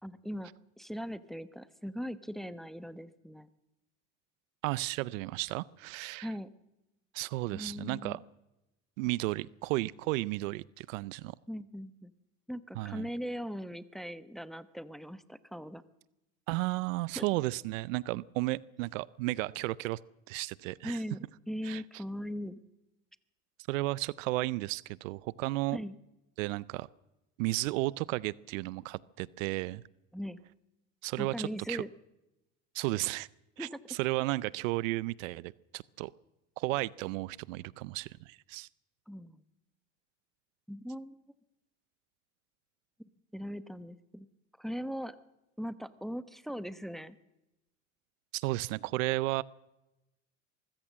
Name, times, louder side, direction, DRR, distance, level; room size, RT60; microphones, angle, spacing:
voice 1, 0.0-0.5 0.8-3.5 6.2-6.5 7.5-8.2 11.5-12.1 12.5-15.8 17.2-17.3 20.8-22.6 25.7-25.9 30.1-30.4 31.2-31.9 33.6-33.8 39.1-39.4 40.7-41.2 43.3-44.3 44.6-45.2 45.6-47.2, equal, ahead, 14 dB, 0.9 m, -39 dB
voice 2, 4.6-6.3 7.1-8.2 9.0-11.3 12.8-13.1 16.5-20.0 20.3-21.0 21.6-21.8 23.7-25.8 26.4-26.9 27.4-29.8 31.0-31.8 32.7-33.3 33.6-36.1 36.6-38.7 48.3-49.4, right 20 dB, 80° right, 23 dB, 0.6 m, -33 dB
23.5 x 15.0 x 7.4 m, 0.96 s
supercardioid pair, 85°, 38 cm